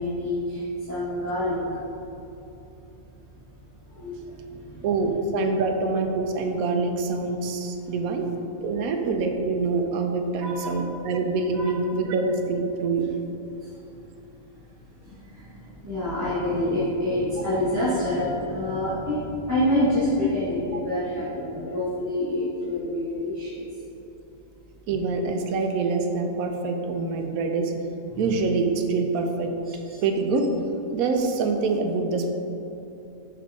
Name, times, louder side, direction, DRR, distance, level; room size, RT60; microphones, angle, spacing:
voice 1, 0.0-1.6 3.9-4.8 7.8-8.2 10.4-10.8 11.5-11.7 13.6-13.7 15.0-23.6 28.1-28.2 29.6-30.0, left 1 dB, 15° right, -12 dB, 1.3 m, -27 dB
voice 2, 4.8-8.3 8.6-13.1 17.4-17.5 20.7-20.8 24.9-27.7 28.2-29.5 30.0-30.5 30.9-32.3, right 3 dB, 85° right, 4 dB, 1.1 m, -25 dB
5.7 x 5.7 x 3.6 m, 3.0 s
omnidirectional pair, 1.5 m